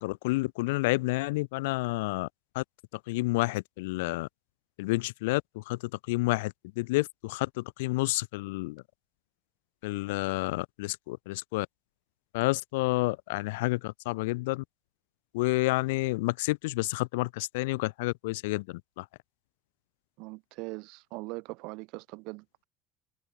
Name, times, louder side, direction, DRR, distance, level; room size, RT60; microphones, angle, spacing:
voice 1, 0.0-2.3 2.6-2.7 3.1-4.3 4.8-5.8 6.1-8.8 9.8-11.7 12.3-14.6 15.3-19.0, left 22 dB, 85° left, 2.0 m, -29 dB
voice 2, 20.2-22.6, right 27 dB, 70° right, 4.0 m, -41 dB
supercardioid pair, 90°, 0 cm